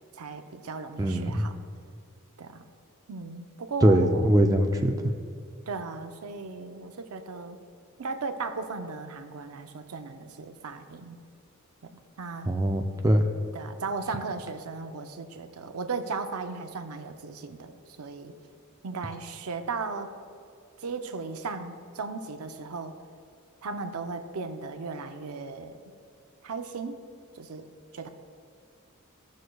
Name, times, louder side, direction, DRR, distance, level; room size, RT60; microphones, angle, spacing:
voice 1, 0.2-1.5 2.4-2.6 3.1-4.5 5.7-7.6 8.0-11.2 11.8-12.5 13.5-18.3 18.8-20.1 20.8-22.9 23.6-25.8 26.4-27.0 27.3-27.7 27.9-28.1, right 4 dB, 90° right, 7 dB, 0.6 m, -36 dB
voice 2, 1.0-1.5 3.8-4.9 12.5-13.2, right 1 dB, 15° right, 4 dB, 0.4 m, -22 dB
15.0 x 6.3 x 2.3 m, 2.3 s
head